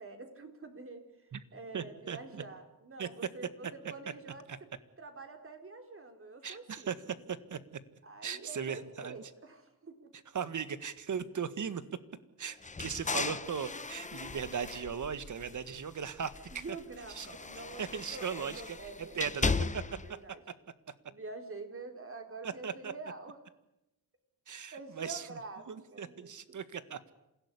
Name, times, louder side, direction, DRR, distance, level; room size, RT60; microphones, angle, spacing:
voice 1, 0.0-4.7 5.0-6.9 8.0-10.1 16.5-20.4 21.1-23.4 24.7-25.7 25.9-26.6, right 3 dB, 35° right, 5 dB, 4.0 m, -47 dB
voice 2, 1.7-2.4 3.0-3.1 4.5-4.6 6.4-7.0 7.3-7.6 8.2-9.2 10.3-11.8 12.4-16.6 17.2-17.3 17.8-19.8 20.1-20.2 22.4-22.9 24.5-25.3 25.7-27.0, right 7 dB, 50° right, 13 dB, 1.7 m, -38 dB
sound 1, 12.6-15.8 16.2-20.1, left 4 dB, 20° left, 0.8 m, -37 dB
27.5 x 17.0 x 9.9 m, 0.90 s
cardioid pair, 110°, 38 cm